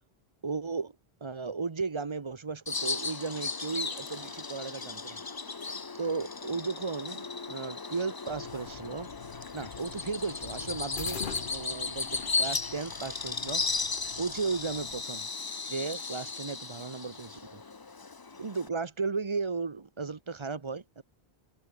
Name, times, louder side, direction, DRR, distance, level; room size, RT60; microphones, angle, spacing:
voice 1, 0.4-1.0 1.2-5.2 6.0-13.6 14.2-15.3 15.7-17.6 18.4-21.0, right 4 dB, 30° right, 0.8 m, -35 dB
Bird vocalization bird call bird song, 2.7-18.7, left 4 dB, 25° left, 0.6 m, -36 dB
sound 1, 8.3-15.0, left 6 dB, 55° left, 1.2 m, -45 dB
omnidirectional pair, 1.1 m